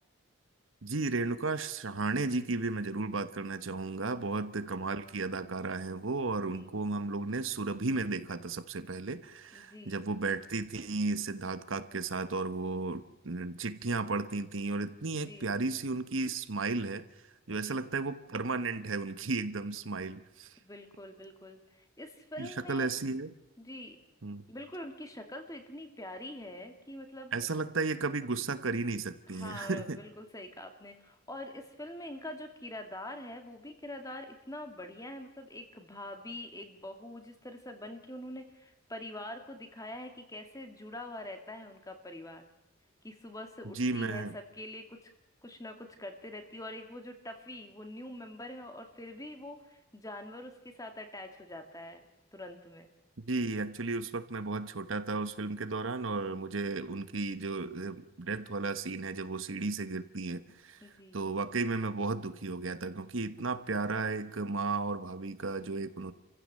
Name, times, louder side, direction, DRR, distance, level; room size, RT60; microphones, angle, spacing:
voice 1, 0.8-17.0 17.5-20.6 22.4-23.4 24.2-24.4 27.3-30.0 43.6-44.3 53.2-66.1, right 3 dB, 75° right, 11 dB, 1.2 m, -34 dB
voice 2, 9.5-10.0 15.2-15.5 17.5-17.9 20.6-22.9 23.6-24.0 24.5-27.3 29.3-42.4 43.0-45.1 45.4-52.0 52.3-52.9 60.8-61.2, left 1 dB, 15° left, 6 dB, 2.4 m, -45 dB
28.5 x 15.5 x 7.6 m, 0.91 s
head